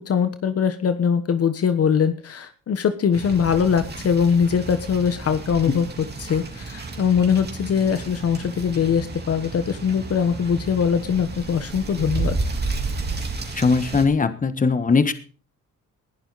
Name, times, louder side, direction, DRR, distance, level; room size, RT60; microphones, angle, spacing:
voice 1, 0.0-12.3, left 7 dB, 50° left, 10 dB, 1.3 m, -22 dB
sound 1, 3.1-14.1, right 3 dB, 35° right, 3.5 m, -32 dB
voice 2, 13.5-15.1, left 4 dB, 25° left, 11 dB, 1.6 m, -19 dB
20.0 x 11.0 x 4.2 m, 0.40 s
cardioid pair, 90°, 30 cm